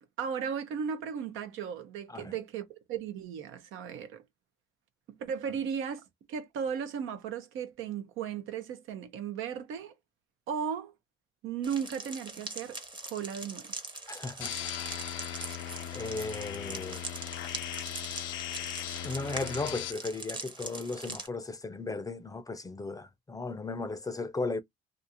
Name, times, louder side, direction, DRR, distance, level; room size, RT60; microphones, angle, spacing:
voice 1, 0.2-4.2 5.2-6.0 6.3-9.9 10.5-10.9 11.4-13.7, right 7 dB, 85° right, 0.6 m, -36 dB
sound 1, 11.6-21.3, right 2 dB, 25° right, 0.8 m, -42 dB
voice 2, 14.1-15.0 15.9-17.0 19.0-24.6, left 3 dB, 20° left, 0.4 m, -36 dB
sound 2, 14.4-19.9, left 12 dB, 80° left, 0.4 m, -38 dB
2.5 x 2.4 x 2.8 m
cardioid pair, 90°, 20 cm